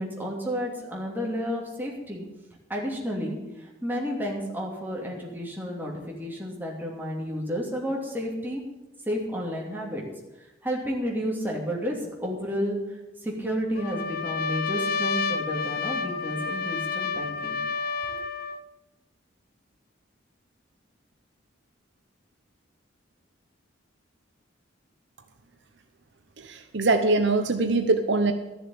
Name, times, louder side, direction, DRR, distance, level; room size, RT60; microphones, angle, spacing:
voice 1, 0.0-2.2 2.7-8.6 9.1-10.0 10.6-13.0 13.2-17.6 18.0-18.2, equal, 10° right, -2 dB, 2.7 m, -31 dB
Trumpet, 13.8-18.6, left 5 dB, 50° left, 0.7 m, -30 dB
voice 2, 26.4-28.3, right 3 dB, 65° right, 7 dB, 0.8 m, -23 dB
13.5 x 6.9 x 8.7 m, 1.0 s
head